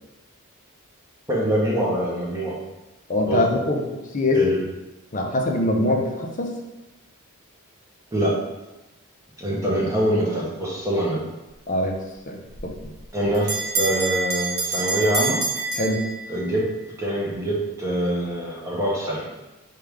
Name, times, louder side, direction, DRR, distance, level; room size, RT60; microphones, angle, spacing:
voice 1, 1.3-2.5 3.2-3.4 4.3-4.6 8.1-8.3 9.4-11.2 13.1-15.4 16.3-16.6 17.0-19.3, right 1 dB, 15° right, -5 dB, 0.8 m, -24 dB
voice 2, 3.1-3.8 4.1-4.5 5.1-6.5 9.5-9.6 11.7-12.0 12.3-12.8 15.7-16.0, left 2 dB, 35° left, 1 dB, 0.5 m, -23 dB
Bell, 12.5-16.6, right 3 dB, 50° right, 0.9 m, -27 dB
4.7 x 2.4 x 3.4 m, 1.0 s
head